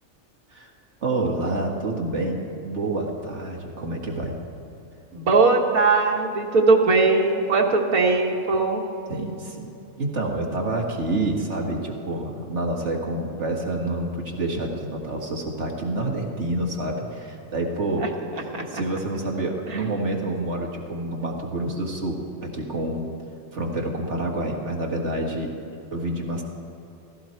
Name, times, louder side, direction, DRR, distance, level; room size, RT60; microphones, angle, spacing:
voice 1, 1.0-4.4 9.1-23.1 23.5-25.5 25.9-26.4, right 2 dB, 50° right, 0 dB, 2.1 m, -28 dB
voice 2, 5.1-8.8 18.5-18.8, right 3 dB, 75° right, 0 dB, 2.0 m, -20 dB
15.5 x 15.5 x 4.5 m, 3.0 s
omnidirectional pair, 1.5 m